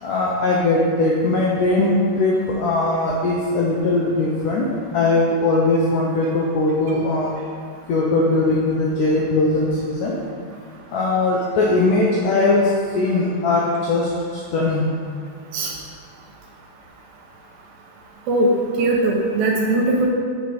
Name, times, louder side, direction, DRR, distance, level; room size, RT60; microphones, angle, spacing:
voice 1, 0.0-4.7 4.9-7.3 7.9-10.2 10.9-14.9, left 2 dB, 80° left, -3 dB, 1.8 m, -20 dB
voice 2, 18.8-20.1, right 2 dB, 75° right, 0 dB, 2.3 m, -19 dB
6.3 x 5.7 x 4.9 m, 2.1 s
omnidirectional pair, 4.6 m